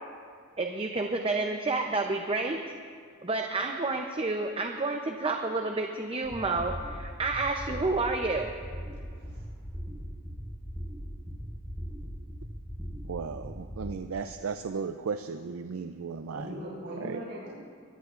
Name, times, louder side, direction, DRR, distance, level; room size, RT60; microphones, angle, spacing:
voice 1, 0.6-2.6 3.2-8.5, right 3 dB, 25° right, 3 dB, 0.7 m, -30 dB
sound 1, 6.2-13.9, equal, 5° right, 4.8 m, -40 dB
voice 2, 9.1-9.5 16.3-17.5, right 1 dB, 65° right, -9 dB, 4.5 m, -39 dB
voice 3, 13.1-16.5 17.0-17.2, right 5 dB, 85° right, 8 dB, 0.5 m, -35 dB
23.0 x 16.5 x 2.5 m, 2.1 s
head